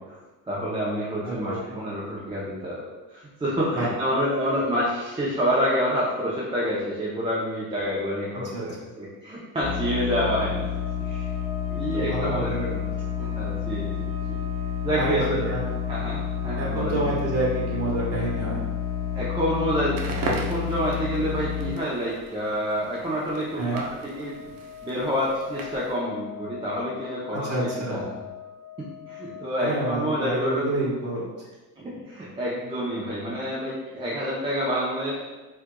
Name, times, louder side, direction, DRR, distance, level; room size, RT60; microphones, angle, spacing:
voice 1, 0.5-10.7 11.0-11.3 11.7-12.8 13.2-14.4 14.8-15.4 15.9-17.2 19.1-24.5 24.8-27.5 27.9-28.0 28.8-30.6 31.8-35.2, equal, 15° right, -6 dB, 0.6 m, -28 dB
voice 2, 1.2-1.6 3.7-3.9 8.5-8.6 11.9-12.7 14.9-15.6 16.5-18.6 23.6-23.8 27.4-28.0 29.6-31.3, right 2 dB, 40° right, -5 dB, 1.5 m, -28 dB
sound 1, 9.6-21.7, left 8 dB, 25° left, 0.8 m, -30 dB
sound 2, 10.6-30.2, left 4 dB, 55° left, 0.9 m, -42 dB
Crackle, 19.8-26.0, right 3 dB, 60° right, 0.7 m, -38 dB
4.4 x 2.5 x 2.2 m, 1.2 s
supercardioid pair, 90°, 39 cm